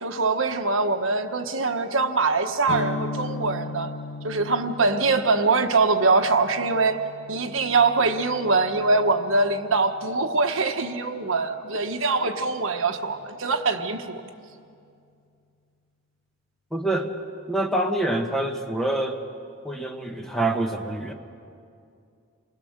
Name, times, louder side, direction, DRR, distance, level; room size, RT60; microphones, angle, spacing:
voice 1, 0.0-3.9 4.2-7.0 7.3-14.2, right 3 dB, 70° right, 6 dB, 1.2 m, -23 dB
sound 1, 2.7-10.5, left 3 dB, 85° left, 0.6 m, -38 dB
voice 2, 16.7-17.1 17.5-19.2 19.6-21.1, right 1 dB, ahead, 2 dB, 1.3 m, -26 dB
28.0 x 20.5 x 6.6 m, 2.4 s
head